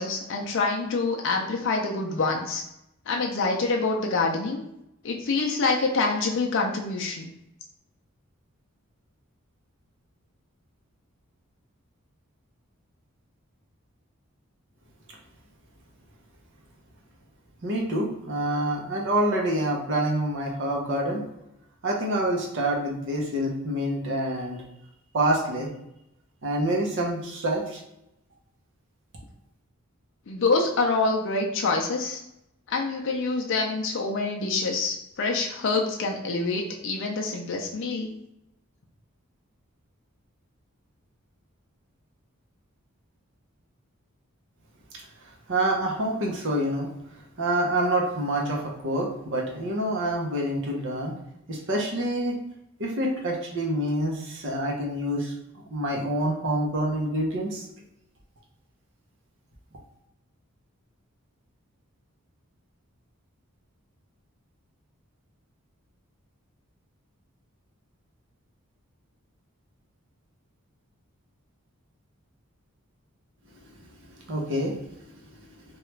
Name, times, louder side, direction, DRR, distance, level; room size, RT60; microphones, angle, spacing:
voice 1, 0.0-2.6 3.1-4.6 5.0-7.3 30.3-32.2 32.7-38.1, left 3 dB, 60° left, 0 dB, 0.4 m, -26 dB
voice 2, 17.6-21.2 21.8-24.6 25.1-25.7 26.4-27.8 45.5-46.9 47.4-51.1 51.5-52.4 52.8-55.3 55.7-57.7 74.3-74.7, right 1 dB, 60° right, -1 dB, 0.7 m, -27 dB
2.9 x 2.3 x 3.2 m, 0.84 s
head